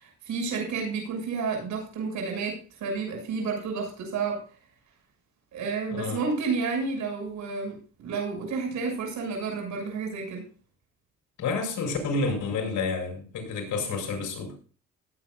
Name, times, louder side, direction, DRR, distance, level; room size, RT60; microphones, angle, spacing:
voice 1, 0.0-4.4 5.5-10.4, right 4 dB, 75° right, 1 dB, 7.0 m, -31 dB
voice 2, 5.9-6.2 11.4-14.6, left 4 dB, 75° left, 3 dB, 5.4 m, -29 dB
18.0 x 8.8 x 2.6 m, 0.39 s
cardioid pair, 90°, 30 cm